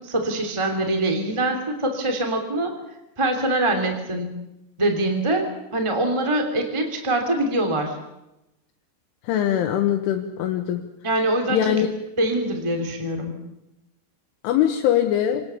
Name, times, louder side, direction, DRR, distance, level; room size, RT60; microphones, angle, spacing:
voice 1, 0.0-2.7 3.2-4.3 4.8-7.9 11.0-11.7 12.2-13.3, right 1 dB, 10° right, 4 dB, 1.3 m, -24 dB
voice 2, 9.3-10.8 11.5-11.9 14.4-15.4, left 10 dB, 75° left, 3 dB, 3.7 m, -22 dB
27.0 x 19.0 x 7.0 m, 0.91 s
omnidirectional pair, 5.9 m